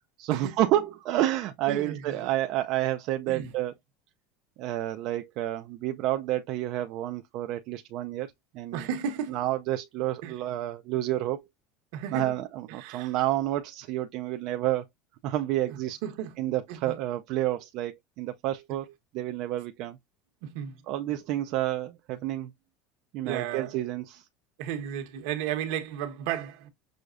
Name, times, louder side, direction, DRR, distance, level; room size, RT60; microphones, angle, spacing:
voice 1, 0.2-3.7 4.6-8.3 8.5-8.8 9.3-11.4 12.1-14.8 15.2-16.0 16.4-20.0 20.9-22.5 23.1-24.3, right 14 dB, 55° right, 0.4 m, -29 dB
voice 2, 1.7-2.3 3.3-3.5 8.7-9.4 10.2-10.4 11.9-12.4 12.7-13.1 15.7-16.3 16.7-16.9 20.4-20.8 23.2-23.7 24.6-26.7, right 9 dB, 75° right, 1.2 m, -34 dB
6.3 x 2.3 x 2.5 m
cardioid pair, 150°, 0 cm